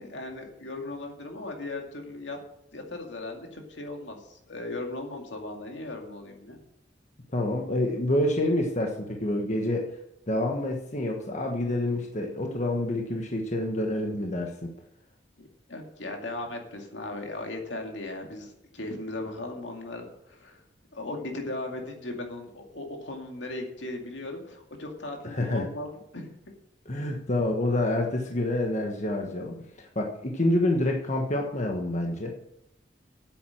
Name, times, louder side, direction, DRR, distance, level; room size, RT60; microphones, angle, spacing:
voice 1, 0.0-2.4 2.7-6.6 15.4-20.6 20.9-26.3, left 2 dB, 80° left, 2 dB, 2.4 m, -37 dB
voice 2, 7.3-9.9 10.3-14.7 25.2-25.7 26.8-32.3, left 1 dB, 40° left, 2 dB, 1.4 m, -27 dB
9.3 x 9.1 x 6.5 m, 0.76 s
head